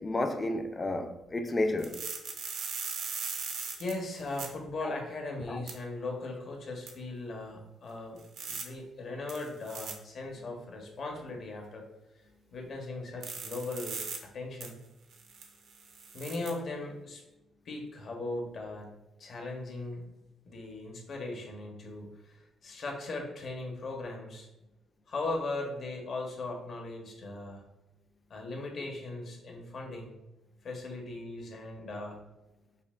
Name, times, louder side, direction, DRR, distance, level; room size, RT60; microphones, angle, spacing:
voice 1, 0.0-2.0 4.8-4.9 5.5-5.6, left 2 dB, 25° left, 0.4 m, -31 dB
sound 1, 1.8-4.5 5.7-5.8 6.9-7.0 8.2-8.6 9.3-9.9 13.2-14.2 14.6-14.7 15.1-16.5, right 5 dB, 75° right, 0.6 m, -39 dB
voice 2, 3.8-8.2 8.5-11.8 12.5-14.8 16.1-17.2 17.6-20.0 20.5-22.1 22.6-24.5 25.1-27.6 28.3-30.2 30.6-32.2, left 2 dB, 55° left, 0.9 m, -38 dB
5.4 x 2.1 x 2.4 m
cardioid pair, 90°, 0 cm